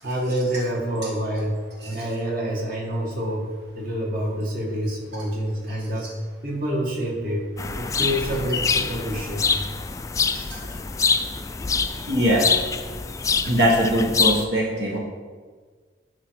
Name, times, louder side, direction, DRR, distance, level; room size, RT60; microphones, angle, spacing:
voice 1, 0.0-6.1 6.4-7.5 7.8-9.5, equal, 50° right, -2 dB, 1.9 m, -27 dB
sound 1, 7.6-14.4, left 5 dB, 20° left, 0.3 m, -25 dB
voice 2, 12.1-12.6 13.4-15.0, equal, 65° right, -3 dB, 1.5 m, -21 dB
11.5 x 4.7 x 4.7 m, 1.5 s
head